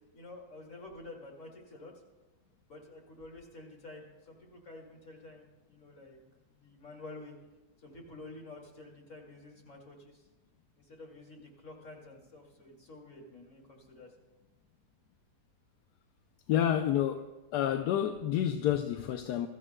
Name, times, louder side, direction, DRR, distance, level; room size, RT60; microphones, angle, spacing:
voice 1, 0.1-1.9 2.7-6.2 6.5-7.3 7.8-10.3 10.8-14.1, left 2 dB, 50° left, 2.7 m, -50 dB
voice 2, 16.5-17.2 17.5-19.5, left 10 dB, 80° left, 1.1 m, -29 dB
23.0 x 13.5 x 2.2 m
omnidirectional pair, 1.8 m